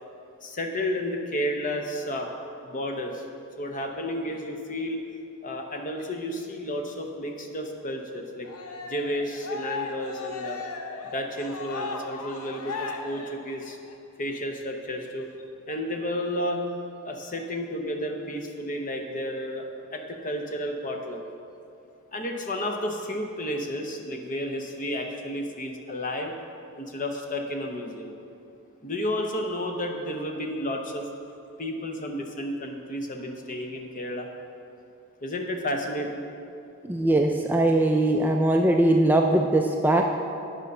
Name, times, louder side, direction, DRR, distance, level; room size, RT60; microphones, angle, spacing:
voice 1, 0.4-2.3 2.6-3.2 3.6-5.0 5.4-8.5 8.9-10.6 11.1-13.8 14.2-15.3 15.7-16.6 17.0-19.6 19.9-21.2 22.1-26.4 26.8-28.1 28.8-31.1 31.6-34.3 35.2-36.2, left 1 dB, 40° left, 3 dB, 0.8 m, -32 dB
Cheering, 8.4-13.9, left 4 dB, 75° left, 0.7 m, -36 dB
voice 2, 36.8-40.1, right 1 dB, 10° right, 2 dB, 0.3 m, -21 dB
9.0 x 5.2 x 5.4 m, 2.6 s
head